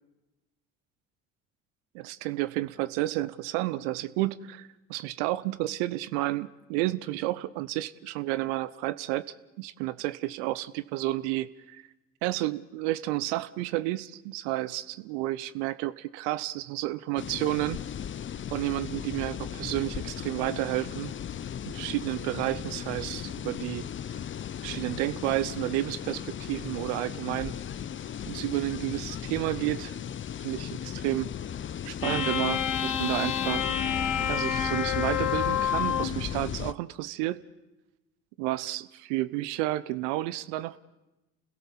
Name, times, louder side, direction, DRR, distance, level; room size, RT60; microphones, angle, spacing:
voice 1, 1.9-9.2 9.6-11.8 12.2-17.8 18.5-21.1 21.6-23.9 24.6-27.5 28.3-30.0 30.4-31.3 31.8-33.7 34.3-37.4 38.4-40.8, right 17 dB, 70° right, 16 dB, 0.8 m, -31 dB
sound 1, 17.2-36.7, left 9 dB, 35° left, 0.7 m, -36 dB
sound 2, 32.0-36.2, left 9 dB, 60° left, 1.9 m, -28 dB
29.0 x 17.0 x 7.4 m, 1.0 s
hypercardioid pair, 55°, 36 cm